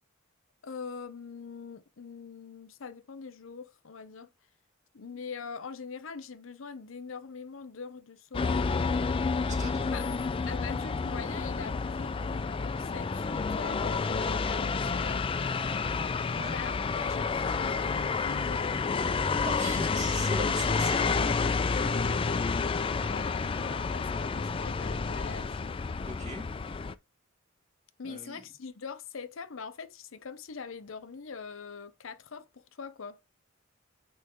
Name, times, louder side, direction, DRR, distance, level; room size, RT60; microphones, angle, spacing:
voice 1, 0.6-4.3 4.9-8.7 9.9-10.0 10.5-15.3 16.5-18.8 23.0-25.6 28.0-33.2, left 5 dB, 75° left, 0.7 m, -43 dB
sound 1, 8.3-26.9, left 4 dB, 25° left, 0.3 m, -30 dB
voice 2, 9.5-9.9 16.3-16.9 19.5-21.5 26.1-26.5 28.0-28.4, right 2 dB, 35° right, 2.1 m, -40 dB
9.1 x 3.1 x 3.7 m
head